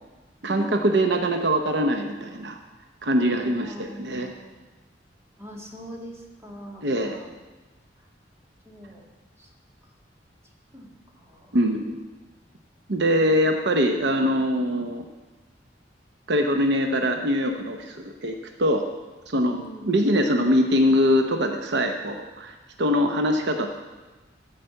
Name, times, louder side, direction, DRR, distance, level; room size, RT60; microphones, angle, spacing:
voice 1, 0.4-2.6 3.0-4.3 6.8-7.2 11.5-12.0 12.9-15.0 16.3-18.8 19.3-23.7, equal, 65° right, 4 dB, 0.8 m, -23 dB
voice 2, 3.4-4.5 5.4-7.3 8.0-8.1 8.7-9.1 9.4-9.5 10.7-11.6 19.4-19.9, equal, 15° right, -1 dB, 1.9 m, -42 dB
14.0 x 5.0 x 7.7 m, 1.2 s
head